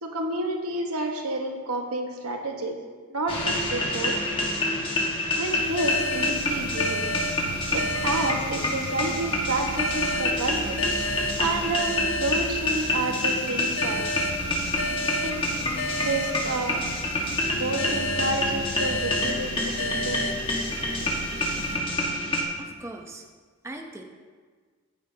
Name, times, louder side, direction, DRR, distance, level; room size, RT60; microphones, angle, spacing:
voice 1, 0.0-2.8 3.1-4.3 5.4-7.1 7.7-10.8 11.4-14.1 14.8-15.4 16.0-16.8 17.5-20.2 21.0-21.1, right 2 dB, 85° right, 2 dB, 1.4 m, -30 dB
sound 1, 3.3-22.4, left 1 dB, 25° left, 1.5 m, -28 dB
sound 2, 5.4-23.0, right 1 dB, 45° right, 0.8 m, -39 dB
sound 3, 5.8-9.1 9.8-13.1 13.8-17.1 17.8-21.1, left 2 dB, 70° left, 0.5 m, -33 dB
voice 2, 22.6-23.2 23.6-24.0, right 1 dB, 10° right, 2 dB, 0.7 m, -39 dB
14.5 x 9.8 x 2.9 m, 1.5 s
head